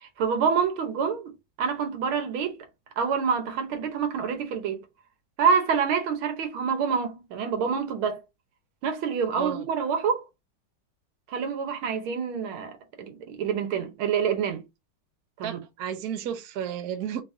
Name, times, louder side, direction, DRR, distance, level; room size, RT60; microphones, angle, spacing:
voice 1, 0.0-1.3 1.6-2.6 3.0-4.8 5.4-8.2 8.8-10.2 11.3-14.6 15.4-15.6, right 6 dB, 80° right, 1.7 m, -27 dB
voice 2, 9.3-9.7 15.4-17.2, right 9 dB, 65° right, 1.0 m, -32 dB
3.9 x 3.5 x 2.6 m
omnidirectional pair, 2.2 m